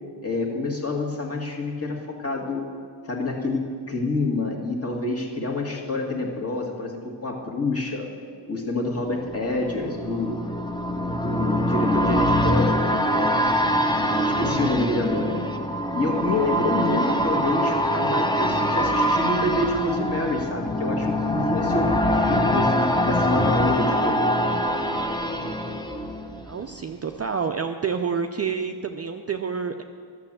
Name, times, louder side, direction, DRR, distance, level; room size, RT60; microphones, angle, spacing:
voice 1, 0.2-2.6 3.1-8.1 8.5-10.4 11.1-13.7 14.3-15.4 15.9-24.3, left 2 dB, 30° left, 0 dB, 1.9 m, -27 dB
sound 1, 9.0-26.8 27.1-27.2, equal, 10° left, 0.8 m, -24 dB
voice 2, 26.4-29.8, right 6 dB, 35° right, 5 dB, 0.5 m, -28 dB
11.5 x 6.8 x 7.5 m, 2.2 s
cardioid pair, 80°, 48 cm